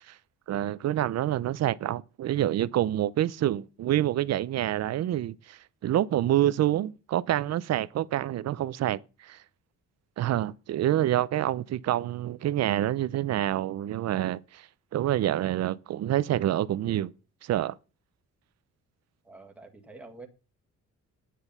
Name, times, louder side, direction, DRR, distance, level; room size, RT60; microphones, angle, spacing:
voice 1, 0.5-9.4 10.2-14.7 14.9-17.1 17.4-17.7, right 13 dB, 55° right, 0.6 m, -27 dB
voice 2, 19.2-20.3, right 3 dB, 5° right, 1.8 m, -47 dB
10.0 x 9.2 x 5.5 m
cardioid pair, 175°, 31 cm